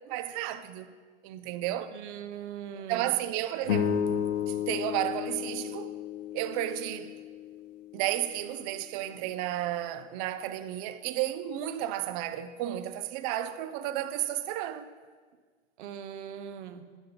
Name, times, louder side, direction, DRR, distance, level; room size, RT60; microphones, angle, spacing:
voice 1, 0.1-0.9 1.2-1.9 2.9-4.0 4.5-5.9 6.3-7.1 7.9-14.9, right 13 dB, 30° right, 0.4 m, -32 dB
voice 2, 1.9-3.1 15.8-17.0, right 9 dB, 65° right, 0.8 m, -41 dB
sound 1, 3.6-8.2, left 8 dB, 70° left, 1.0 m, -32 dB
11.0 x 5.2 x 5.6 m
hypercardioid pair, 115°, 38 cm